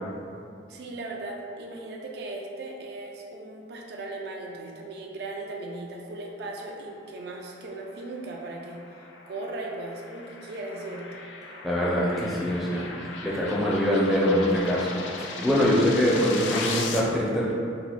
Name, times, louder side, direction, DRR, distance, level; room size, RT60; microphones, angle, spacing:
voice 1, 0.7-11.2, right 2 dB, 60° right, 0 dB, 0.3 m, -37 dB
sound 1, 8.1-17.0, left 4 dB, 85° left, 0.4 m, -38 dB
voice 2, 11.6-12.9 13.2-14.9 15.2-17.5, equal, ahead, -7 dB, 0.5 m, -23 dB
3.0 x 2.0 x 4.0 m, 2.4 s
head